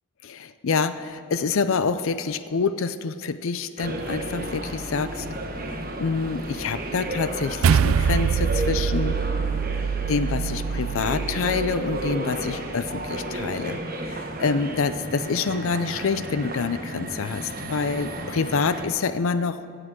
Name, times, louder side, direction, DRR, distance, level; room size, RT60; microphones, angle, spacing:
voice 1, 0.2-5.3 5.6-9.2 10.1-19.6, left 5 dB, 65° left, 12 dB, 0.5 m, -27 dB
sound 1, 3.8-13.1, equal, 80° left, 1.9 m, -42 dB
sound 2, 3.8-18.9, right 1 dB, 40° right, 1.5 m, -33 dB
sound 3, 7.6-12.2, right 7 dB, 70° right, 0.3 m, -24 dB
16.0 x 7.7 x 6.2 m, 2.4 s
head